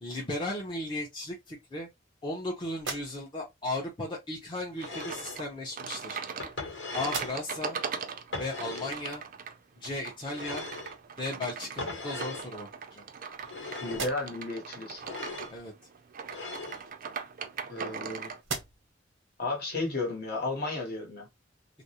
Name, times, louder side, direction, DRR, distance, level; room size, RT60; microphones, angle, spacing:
voice 1, 0.0-1.9 2.2-6.2 6.9-7.8 8.4-9.2 9.8-10.7 11.2-13.0 15.5-15.7, left 2 dB, 25° left, 0.6 m, -36 dB
sound 1, 2.7-3.6 4.7-4.9 5.8-6.7 7.0-7.7 8.2-8.3 11.0-11.1 11.5-12.2 12.8-13.5 13.8-14.6 16.6-18.0 18.4-19.1, right 4 dB, 85° right, 0.8 m, -42 dB
sound 2, 4.8-5.4 6.4-7.4 8.3-9.0 10.3-11.0 11.8-12.5 13.4-14.1 15.0-15.5 16.3-16.8, left 3 dB, 85° left, 1.1 m, -39 dB
sound 3, 4.8-18.4, right 6 dB, 50° right, 0.4 m, -40 dB
voice 2, 13.8-15.0 17.7-18.3 19.4-21.3, left 2 dB, 55° left, 1.1 m, -33 dB
2.4 x 2.0 x 2.8 m
head